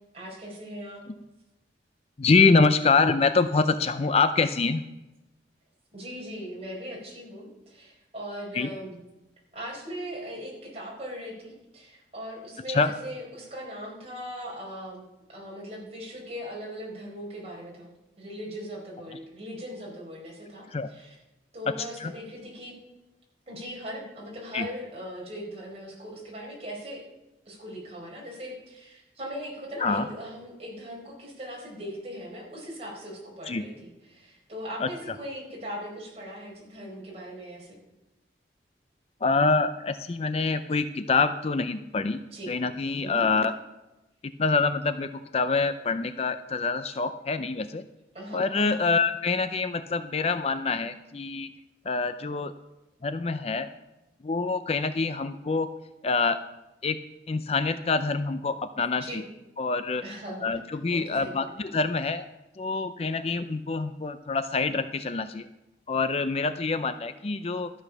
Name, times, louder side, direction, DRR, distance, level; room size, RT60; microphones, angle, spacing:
voice 1, 0.1-1.0 5.9-9.0 9.5-17.9 18.2-21.1 21.5-22.8 23.5-27.0 27.5-37.8 42.3-42.5 43.0-43.3 48.1-48.8 59.0-59.2 60.0-61.5, equal, 35° right, -3 dB, 4.6 m, -39 dB
voice 2, 2.2-4.8 8.5-8.7 12.7-12.9 20.7-20.9 21.8-22.1 24.5-24.7 29.8-30.1 33.5-33.6 34.8-34.9 39.2-42.2 42.5-43.5 44.4-47.8 48.3-51.5 51.9-52.5 53.0-53.7 54.2-55.7 56.0-56.4 56.8-57.0 57.3-59.2 59.6-60.0 60.4-62.3 62.6-65.5 65.9-67.7, left 4 dB, 35° left, 11 dB, 0.5 m, -25 dB
13.5 x 8.0 x 6.1 m, 1.0 s
head